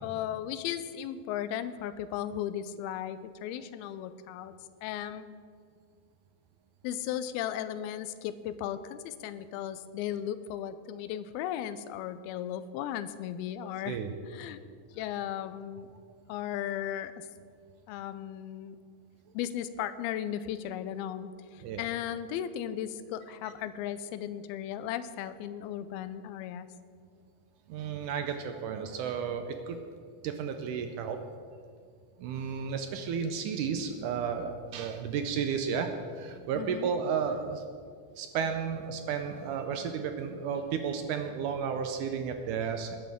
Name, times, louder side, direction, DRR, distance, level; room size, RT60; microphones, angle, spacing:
voice 1, 0.0-4.5 4.8-5.3 6.8-14.0 14.3-14.6 14.9-15.9 16.3-17.3 17.9-18.8 19.3-26.7 36.5-36.9, left 10 dB, 90° left, 12 dB, 2.5 m, -36 dB
voice 2, 27.7-29.8 30.2-31.2 32.2-37.6 38.2-43.0, right 6 dB, 75° right, 6 dB, 1.9 m, -33 dB
20.0 x 10.0 x 3.6 m, 2.1 s
omnidirectional pair, 4.3 m